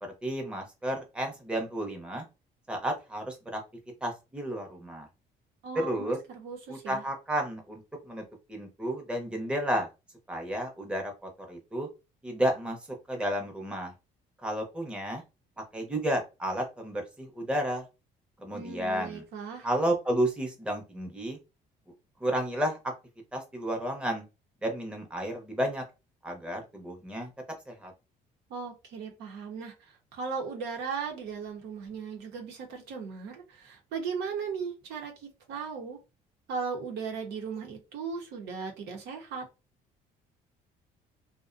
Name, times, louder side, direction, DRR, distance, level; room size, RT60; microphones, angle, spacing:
voice 1, 0.0-2.2 2.7-3.6 4.0-5.1 5.7-6.2 6.7-8.2 8.5-9.9 10.3-11.9 12.2-12.8 13.1-13.9 14.4-15.2 15.7-17.8 18.4-19.2 19.6-21.4 22.2-22.8 23.3-24.2 24.6-25.8 26.2-27.3 27.7-27.9, right 1 dB, 5° right, 0.6 m, -32 dB
voice 2, 5.6-7.0 18.5-19.7 28.5-29.7 30.1-36.0 36.5-39.4, right 5 dB, 85° right, 0.8 m, -37 dB
2.4 x 2.1 x 2.4 m
cardioid pair, 110°, 17 cm